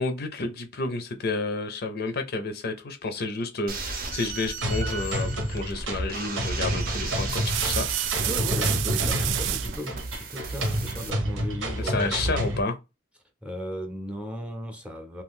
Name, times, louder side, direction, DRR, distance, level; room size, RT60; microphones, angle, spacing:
voice 1, 0.0-8.2 11.8-12.8, left 3 dB, 55° left, 0.5 m, -30 dB
sound 1, 3.7-11.1, right 3 dB, 50° right, 0.7 m, -35 dB
sound 2, 4.6-12.6, right 1 dB, 90° right, 1.1 m, -29 dB
sound 3, 6.1-6.4 7.1-9.8 11.2-11.9, right 13 dB, 65° right, 0.3 m, -31 dB
voice 2, 8.1-12.6 13.4-15.2, equal, 5° right, 0.7 m, -36 dB
2.7 x 2.4 x 3.6 m
head